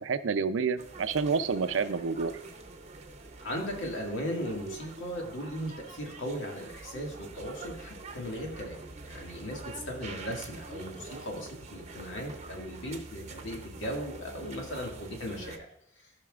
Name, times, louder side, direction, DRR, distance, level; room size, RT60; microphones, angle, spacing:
voice 1, 0.0-2.3, right 5 dB, 85° right, 12 dB, 0.5 m, -28 dB
sound 1, 0.8-15.6, right 3 dB, 35° right, 0.8 m, -45 dB
voice 2, 3.4-8.8 9.0-15.7 16.0-16.1, equal, 80° left, 0 dB, 1.9 m, -37 dB
14.5 x 5.8 x 2.4 m, 0.72 s
head